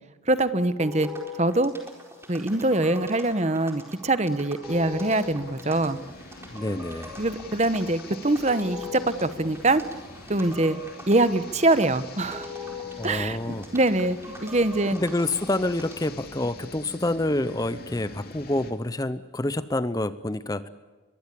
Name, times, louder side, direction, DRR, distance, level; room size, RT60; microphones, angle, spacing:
voice 1, 0.3-1.1 1.4-1.7 2.3-6.0 7.2-9.8 10.3-10.8 11.1-12.5 13.0-15.0, right 2 dB, 35° right, 13 dB, 1.1 m, -24 dB
sound 1, 0.8-16.2, left 4 dB, 15° right, 4.3 m, -42 dB
sound 2, 4.6-18.7, left 2 dB, 50° left, 2.9 m, -45 dB
voice 2, 6.5-7.1 13.0-13.7 14.9-20.7, left 1 dB, 20° left, 14 dB, 0.7 m, -27 dB
23.5 x 22.5 x 8.4 m, 1.3 s
head